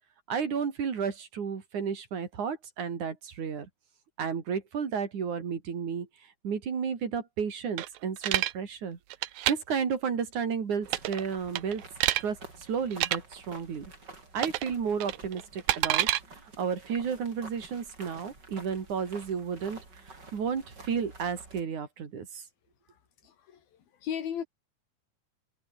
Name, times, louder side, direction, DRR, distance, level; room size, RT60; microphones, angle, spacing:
voice 1, 0.3-3.7 4.2-6.1 6.4-9.0 9.5-11.8 12.2-12.4 12.7-13.9 14.3-16.1 16.6-19.8 20.1-22.4, right 6 dB, 55° right, 4.4 m, -32 dB
sound 1, 7.8-8.5 9.1-9.5 10.9-11.2 11.6-12.2 12.9-13.2 14.4-14.7 15.0-16.2, right 15 dB, 80° right, 2.7 m, -27 dB
sound 2, 10.8-21.6, right 3 dB, 30° right, 5.8 m, -49 dB
voice 2, 22.9-24.4, left 8 dB, 85° left, 4.5 m, -37 dB
omnidirectional pair, 4.1 m